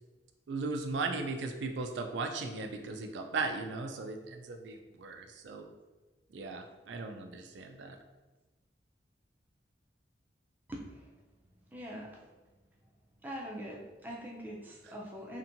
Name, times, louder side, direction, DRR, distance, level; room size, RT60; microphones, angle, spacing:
voice 1, 0.5-5.6 6.3-8.0, right 3 dB, 85° right, 5 dB, 0.4 m, -37 dB
voice 2, 10.7-11.2 11.7-12.2 13.2-15.4, equal, 10° right, -3 dB, 0.4 m, -43 dB
2.7 x 2.6 x 2.5 m, 1.2 s
head